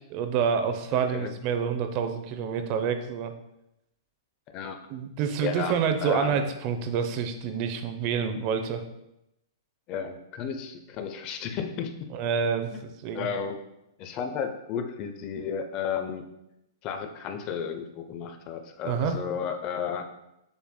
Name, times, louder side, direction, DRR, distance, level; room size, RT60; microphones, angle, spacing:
voice 1, 0.1-3.3 4.9-8.8 12.1-13.3 18.8-19.1, right 7 dB, 40° right, 8 dB, 0.6 m, -28 dB
voice 2, 5.4-6.5 9.9-12.1 13.1-13.6 14.0-16.3 16.8-20.1, left 7 dB, 35° left, 6 dB, 0.5 m, -33 dB
7.0 x 3.4 x 2.2 m, 0.86 s
hypercardioid pair, 125°, 2 cm